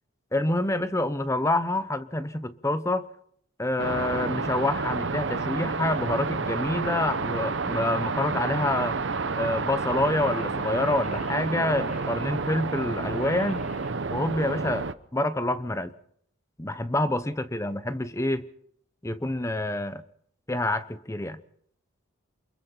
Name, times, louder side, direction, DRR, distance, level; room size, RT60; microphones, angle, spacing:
voice 1, 0.3-3.1 3.6-9.0 9.4-13.7 14.1-14.8 15.1-15.9 16.6-18.5 19.0-20.0 20.5-21.4, left 1 dB, 15° left, 0.8 m, -27 dB
sound 1, 3.8-14.9, right 4 dB, 60° right, 0.8 m, -30 dB
Singing, 6.2-13.9, left 2 dB, 30° left, 1.1 m, -48 dB
28.5 x 22.0 x 4.4 m
head